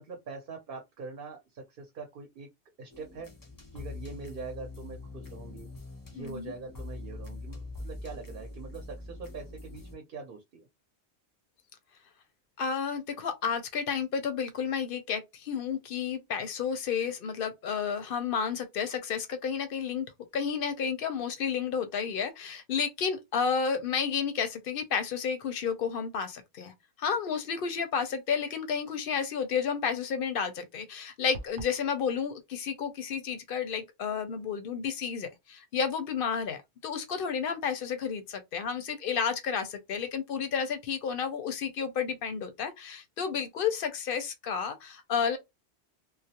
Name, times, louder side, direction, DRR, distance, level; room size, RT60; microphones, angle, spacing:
voice 1, 0.0-2.5 2.8-3.3 3.7-5.7 6.1-10.7, right 4 dB, 60° right, 0.8 m, -43 dB
sound 1, 2.9-10.0, left 2 dB, 25° left, 0.5 m, -43 dB
voice 2, 6.1-6.5 12.6-20.1 20.3-45.4, left 6 dB, 60° left, 0.7 m, -31 dB
sound 2, 31.3-31.8, right 1 dB, 85° right, 0.9 m, -42 dB
2.3 x 2.0 x 2.7 m
omnidirectional pair, 1.1 m